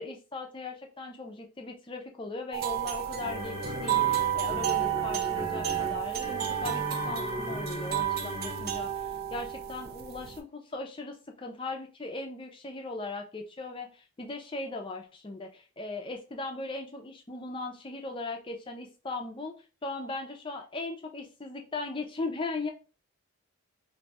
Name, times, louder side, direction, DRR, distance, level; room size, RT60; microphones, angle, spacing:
voice 1, 0.0-19.5 19.8-22.7, left 3 dB, 25° left, 3 dB, 0.4 m, -38 dB
sound 1, 2.5-10.4, right 11 dB, 45° right, 0.3 m, -31 dB
sound 2, 2.6-9.1, left 1 dB, 15° right, 0.8 m, -38 dB
2.6 x 2.3 x 4.0 m, 0.34 s
head